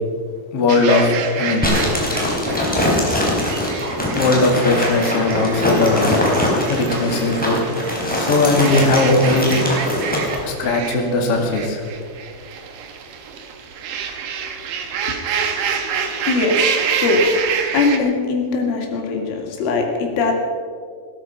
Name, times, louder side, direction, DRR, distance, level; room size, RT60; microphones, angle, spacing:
voice 1, 0.5-1.7 4.1-6.1 6.7-7.6 8.2-9.6 10.4-11.8, left 3 dB, 45° left, 1 dB, 2.2 m, -18 dB
sound 1, 0.7-18.0, right 7 dB, 65° right, 2.3 m, -28 dB
sound 2, 1.6-10.4, left 1 dB, ahead, 2.7 m, -21 dB
voice 2, 16.3-17.2 17.7-20.3, left 3 dB, 80° left, 1 dB, 4.7 m, -20 dB
18.5 x 13.0 x 5.8 m, 2.1 s
omnidirectional pair, 5.6 m